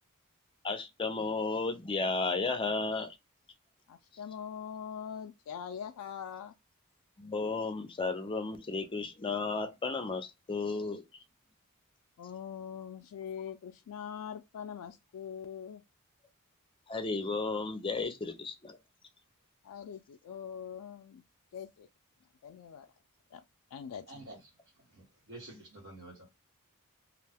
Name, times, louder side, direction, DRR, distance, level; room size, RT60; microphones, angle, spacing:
voice 1, 0.6-3.1 7.2-11.0 16.9-18.8, left 3 dB, 25° left, 0.4 m, -33 dB
voice 2, 3.9-6.5 12.2-15.8 19.6-21.2 21.5-21.9 22.4-22.9 23.3-23.4 23.7-24.1, left 8 dB, 90° left, 0.3 m, -43 dB
voice 3, 24.1-24.5 24.9-26.3, right 2 dB, 60° right, 1.0 m, -49 dB
2.5 x 2.1 x 3.4 m
head